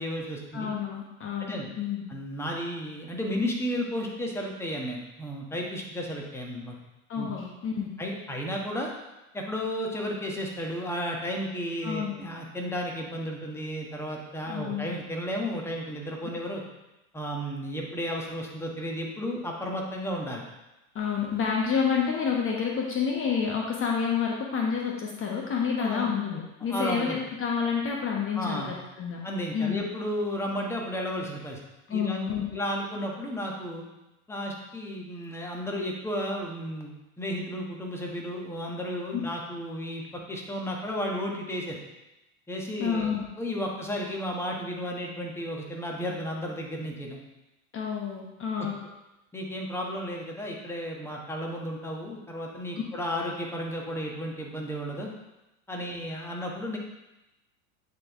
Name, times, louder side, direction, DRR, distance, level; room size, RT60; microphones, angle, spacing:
voice 1, 0.0-0.7 1.4-1.7 2.1-6.7 7.2-7.3 8.0-8.9 9.3-16.6 17.1-20.4 25.8-26.1 26.7-27.2 28.3-28.7 29.2-31.6 31.9-33.8 34.3-40.0 40.3-41.8 42.5-43.1 43.4-47.2 49.3-55.1 55.7-56.8, equal, 5° left, -1 dB, 1.3 m, -33 dB
voice 2, 0.5-2.0 7.1-7.9 11.8-12.2 14.5-14.9 20.9-29.2 29.5-29.8 31.9-32.5 39.1-39.2 42.8-43.3 47.7-48.7, left 6 dB, 30° left, -1 dB, 1.1 m, -29 dB
9.4 x 3.9 x 3.6 m, 0.98 s
hypercardioid pair, 85°, 43 cm